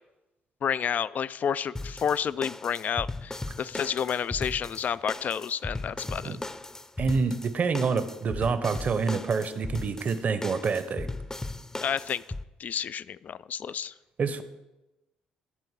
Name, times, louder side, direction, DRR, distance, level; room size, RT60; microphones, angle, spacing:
voice 1, 0.6-6.4 11.8-12.2 12.6-13.9, left 8 dB, 50° left, 17 dB, 0.4 m, -30 dB
sound 1, 1.8-12.4, left 2 dB, 15° left, 0.7 m, -37 dB
voice 2, 7.0-11.1 14.2-14.4, right 5 dB, 45° right, 12 dB, 0.9 m, -27 dB
11.5 x 4.5 x 7.3 m, 1.0 s
hypercardioid pair, 55°, 3 cm